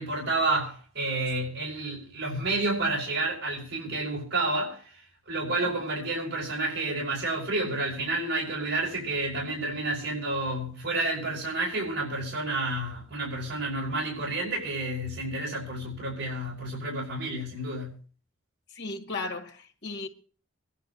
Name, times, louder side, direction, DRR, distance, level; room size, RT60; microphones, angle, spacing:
voice 1, 0.0-4.9 5.3-17.9, right 2 dB, 65° right, 5.8 m, -30 dB
voice 2, 18.7-20.1, left 3 dB, 55° left, 2.4 m, -36 dB
26.5 x 11.5 x 2.7 m
head